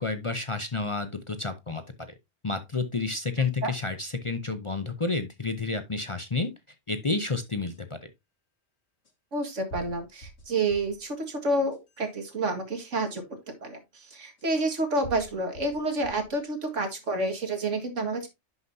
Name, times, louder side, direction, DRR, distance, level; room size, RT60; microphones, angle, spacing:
voice 1, 0.0-1.8 2.4-6.5 6.9-8.0, left 3 dB, 30° left, 0.7 m, -30 dB
sound 1, 7.7-7.8 9.0-9.1 9.7-11.0 11.5-12.1 13.1-13.2 14.4-14.5 15.0-16.3 16.9-17.4, right 1 dB, 90° left, 1.9 m, -46 dB
voice 2, 9.3-18.3, right 2 dB, 80° right, 2.3 m, -29 dB
11.0 x 5.9 x 2.7 m
omnidirectional pair, 1.2 m